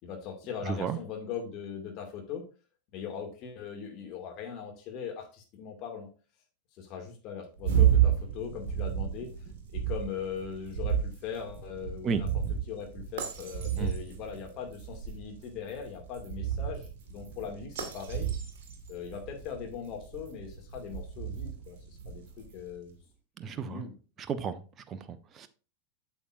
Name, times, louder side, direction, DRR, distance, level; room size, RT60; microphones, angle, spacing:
voice 1, 0.0-2.4 2.9-6.1 6.8-9.3 9.7-12.3 12.7-18.3 18.9-22.2 22.5-23.0 23.5-23.9, left 7 dB, 40° left, 2.2 m, -40 dB
voice 2, 0.6-1.0 12.0-12.2 13.8-13.9 23.4-23.9 24.2-25.5, right 6 dB, 25° right, 0.7 m, -34 dB
sound 1, 7.6-22.7, right 9 dB, 50° right, 1.8 m, -32 dB
8.3 x 7.0 x 2.6 m
figure-of-eight pair, 90°, 0 cm